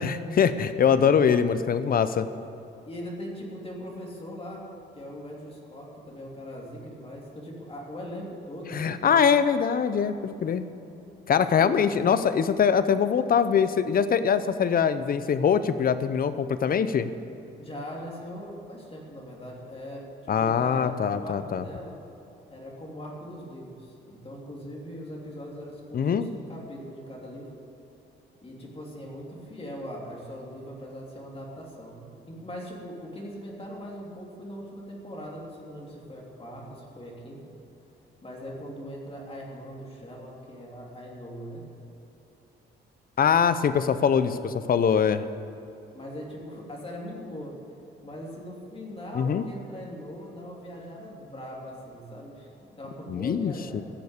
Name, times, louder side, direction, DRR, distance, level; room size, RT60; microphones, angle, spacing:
voice 1, 0.0-2.3 8.7-10.6 11.3-17.1 20.3-21.6 25.9-26.3 43.2-45.2 49.1-49.4 53.1-53.8, left 7 dB, 45° left, 12 dB, 0.7 m, -23 dB
voice 2, 2.9-4.6 4.9-9.2 11.6-11.9 17.6-22.0 22.5-27.5 28.4-37.4 38.2-41.7 45.9-47.5 48.0-53.8, equal, 30° left, -2 dB, 3.1 m, -40 dB
14.5 x 7.0 x 8.3 m, 2.9 s
cardioid pair, 90°, 20 cm